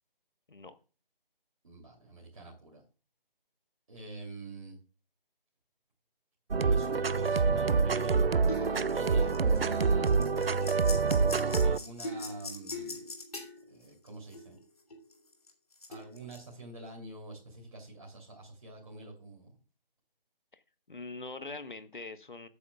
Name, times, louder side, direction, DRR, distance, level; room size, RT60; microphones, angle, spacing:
voice 1, 1.6-2.8 3.9-4.8 6.6-8.3 8.7-10.2 11.6-13.0 13.7-14.6 15.9-19.5, right 2 dB, 35° right, -2 dB, 3.0 m, -46 dB
sound 1, 6.5-11.8, right 4 dB, 80° right, 0.6 m, -26 dB
sound 2, 8.5-9.8 10.0-14.6 14.9-16.4, left 1 dB, 40° left, 2.3 m, -41 dB
voice 2, 20.9-22.5, left 3 dB, 55° left, 11 dB, 1.2 m, -43 dB
14.0 x 8.5 x 2.3 m, 0.34 s
figure-of-eight pair, 160°, 29 cm